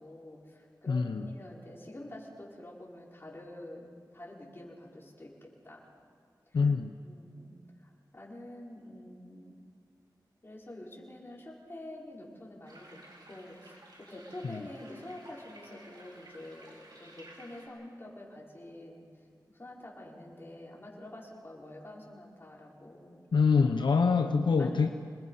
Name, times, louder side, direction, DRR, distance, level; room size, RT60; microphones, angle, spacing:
voice 1, 0.0-5.9 6.5-6.7 7.0-9.6 10.4-13.0 13.2-23.3 24.6-24.9, left 1 dB, 30° left, -4 dB, 5.2 m, -47 dB
voice 2, 0.9-1.2 6.5-6.9 14.4-14.6 23.3-24.9, left 5 dB, 85° left, 6 dB, 0.8 m, -25 dB
sound 1, 12.6-17.7, right 1 dB, 65° right, 5.2 m, -54 dB
27.0 x 20.5 x 5.7 m, 2.1 s
wide cardioid pair, 75°, 8 cm